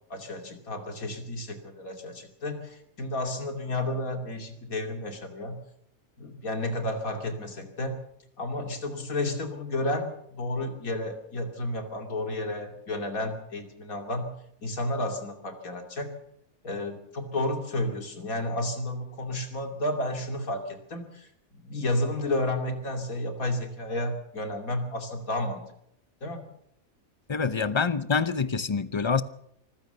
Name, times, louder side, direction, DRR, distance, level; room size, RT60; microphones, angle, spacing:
voice 1, 0.1-5.6 6.2-8.0 8.4-14.3 14.6-16.1 16.6-25.6 26.2-26.4 27.5-27.7, left 1 dB, 75° left, 3.2 m, -32 dB
voice 2, 27.3-29.2, left 5 dB, 30° left, 0.6 m, -26 dB
25.5 x 15.5 x 6.8 m
omnidirectional pair, 1.5 m